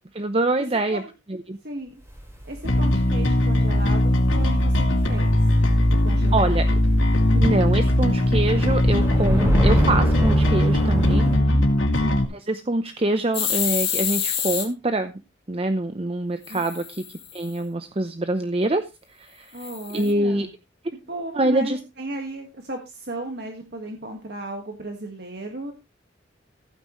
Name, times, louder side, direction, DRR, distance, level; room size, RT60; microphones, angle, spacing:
voice 1, 0.1-1.0 1.3-1.6 6.3-6.7 7.3-11.3 12.3-15.1 15.5-17.0 17.3-19.7 19.9-20.5 21.3-21.8, right 2 dB, 30° right, 9 dB, 0.7 m, -25 dB
sound 1, 2.1-6.7 7.0-7.1 7.6-11.4, equal, 15° right, 4.7 m, -28 dB
voice 2, 2.5-5.3 6.0-6.5 11.1-11.7 16.5-16.6 19.5-20.5 21.1-25.7, right 1 dB, 55° right, 3 dB, 1.8 m, -34 dB
Bass guitar, 2.6-12.2, left 1 dB, 85° left, 2.6 m, -19 dB
sound 2, 13.3-14.7 16.4-17.5 19.6-20.1, left 9 dB, 30° left, 2.3 m, -27 dB
15.0 x 9.3 x 3.1 m, 0.25 s
head